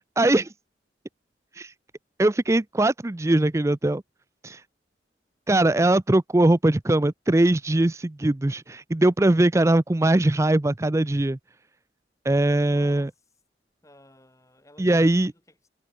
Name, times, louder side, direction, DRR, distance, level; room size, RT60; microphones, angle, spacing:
voice 1, 0.2-0.5 1.5-1.7 2.2-4.0 4.4-4.6 5.5-11.4 12.2-13.1 14.8-15.3, right 1 dB, 15° right, 0.4 m, -21 dB
voice 2, 12.6-13.3 13.8-15.7, left 1 dB, 15° left, 7.5 m, -54 dB
head